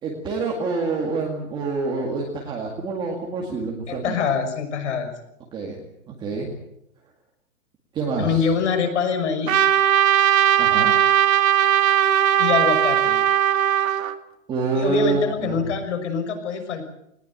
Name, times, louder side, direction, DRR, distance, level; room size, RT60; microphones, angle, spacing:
voice 1, 0.0-4.2 5.5-5.8 6.1-6.5 7.9-8.5 10.6-10.9 14.5-15.6, right 4 dB, 10° right, -1 dB, 2.0 m, -26 dB
voice 2, 3.9-5.1 8.2-9.6 12.4-13.2 14.8-16.8, left 6 dB, 55° left, 7 dB, 6.1 m, -24 dB
Trumpet, 9.5-14.2, right 10 dB, 70° right, 2.1 m, -18 dB
20.5 x 20.0 x 8.9 m, 0.80 s
hypercardioid pair, 180°, 42 cm